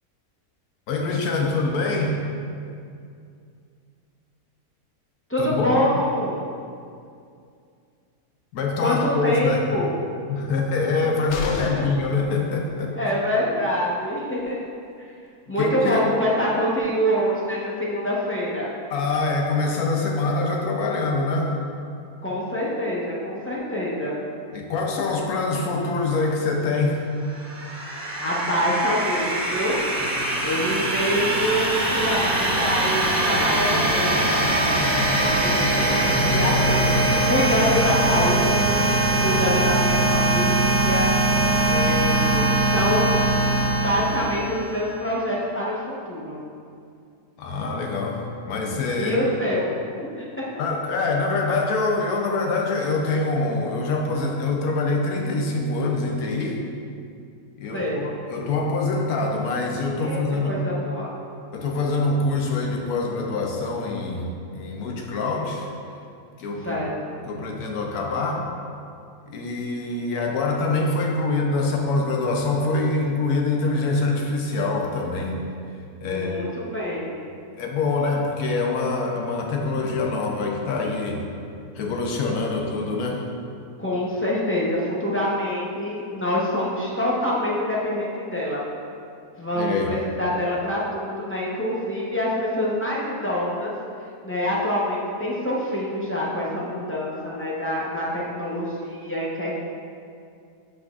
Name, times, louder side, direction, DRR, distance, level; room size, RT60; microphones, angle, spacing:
voice 1, 0.9-2.2 5.4-5.8 8.5-9.7 10.3-12.9 15.6-16.0 18.9-21.5 24.5-27.0 47.4-49.2 50.6-56.6 57.6-60.5 61.5-65.7 66.4-66.8 67.3-68.5 69.3-75.4 76.0-76.4 77.6-81.2 81.7-83.2 89.5-89.9, left 3 dB, 90° left, 0 dB, 1.2 m, -25 dB
voice 2, 5.3-6.5 8.8-9.9 11.6-11.8 12.9-14.6 15.5-18.7 22.2-24.2 28.1-29.8 30.4-34.3 35.3-41.1 41.7-43.3 43.8-46.4 49.0-50.1 50.4-50.5 57.7-58.0 60.0-60.2 60.5-61.1 66.6-66.9 76.0-77.2 83.8-88.6 89.4-93.7 94.2-99.5, left 1 dB, 10° left, -7 dB, 0.6 m, -26 dB
sound 1, 11.3-12.0 14.0-14.1 14.4-14.5, left 3 dB, 65° left, 0.7 m, -32 dB
sound 2, 27.3-44.9, right 1 dB, 75° right, 1.2 m, -22 dB
8.0 x 5.1 x 2.4 m, 2.4 s
omnidirectional pair, 1.5 m